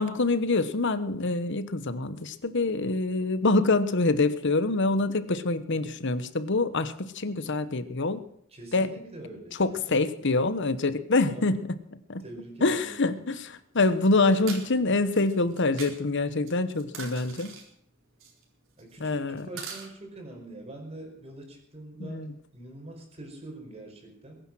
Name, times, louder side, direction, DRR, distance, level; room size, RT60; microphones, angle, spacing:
voice 1, 0.0-8.2 8.7-8.9 9.6-12.2 12.6-17.5 19.0-19.5 22.0-22.3, left 3 dB, 60° left, 13 dB, 1.1 m, -26 dB
voice 2, 8.5-10.4 11.3-11.6 12.2-13.3 18.8-24.4, right 1 dB, 30° right, 2 dB, 5.1 m, -44 dB
sound 1, 13.3-13.4 14.3-14.6 15.2-15.9 16.5-17.6 18.2-18.4 18.8-19.1 19.4-19.9, right 5 dB, 70° right, 4.2 m, -41 dB
22.0 x 10.0 x 6.3 m, 0.69 s
head